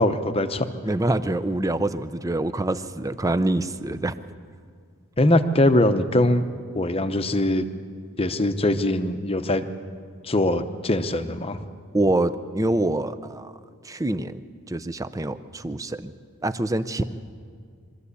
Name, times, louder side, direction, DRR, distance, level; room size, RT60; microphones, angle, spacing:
voice 1, 0.0-0.7 5.2-6.4 6.7-7.7 8.2-9.7 10.2-11.6, left 1 dB, 25° left, 10 dB, 0.8 m, -22 dB
voice 2, 0.8-4.1 11.9-13.5 13.8-14.4 14.7-16.1 16.4-17.0, right 2 dB, 15° right, 12 dB, 0.6 m, -25 dB
24.0 x 14.0 x 8.3 m, 2.2 s
head